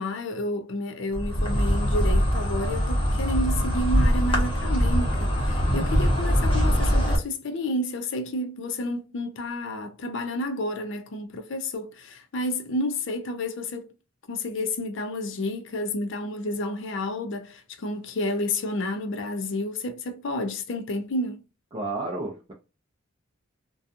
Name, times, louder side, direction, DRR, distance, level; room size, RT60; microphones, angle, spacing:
voice 1, 0.0-13.9 14.3-21.4, left 1 dB, 65° left, 0.5 m, -30 dB
Insect, 1.1-7.2, equal, 25° left, 0.8 m, -23 dB
voice 2, 21.7-22.5, right 2 dB, 25° right, 0.4 m, -31 dB
2.5 x 2.3 x 2.6 m
head